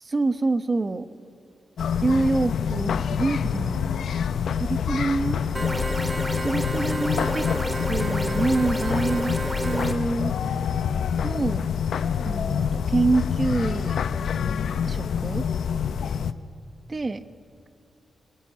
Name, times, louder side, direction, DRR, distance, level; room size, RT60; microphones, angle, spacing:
voice 1, 0.1-1.1 2.0-4.1 4.6-5.4 6.4-7.5 7.9-10.3 11.2-11.7 12.2-14.0 14.9-15.4 16.9-17.2, right 3 dB, 30° right, 11 dB, 1.1 m, -26 dB
sound 1, 1.8-16.3, left 7 dB, 80° left, 0.9 m, -26 dB
sound 2, 5.5-9.9, right 1 dB, 10° right, 2.6 m, -30 dB
26.0 x 22.5 x 8.8 m, 2.3 s
wide cardioid pair, 115°, 0 cm